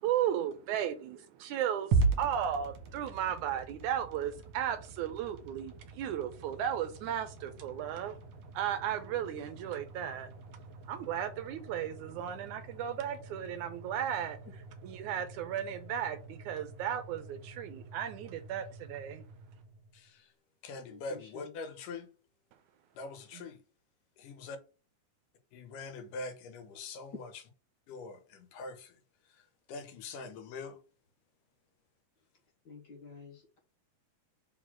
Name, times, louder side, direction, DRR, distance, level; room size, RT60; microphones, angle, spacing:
voice 1, 0.0-8.2 8.6-10.3 10.9-14.4 14.8-19.2, right 10 dB, 80° right, 2.1 m, -35 dB
sound 1, 1.9-20.1, right 4 dB, 60° right, 2.6 m, -40 dB
voice 2, 19.9-20.3 20.6-22.1 22.9-23.6 24.2-24.6 25.5-27.4 27.9-29.0 29.3-30.8, left 3 dB, 85° left, 2.7 m, -43 dB
voice 3, 20.9-21.5 32.6-33.6, left 4 dB, 45° left, 1.4 m, -50 dB
5.6 x 4.0 x 6.1 m
omnidirectional pair, 3.7 m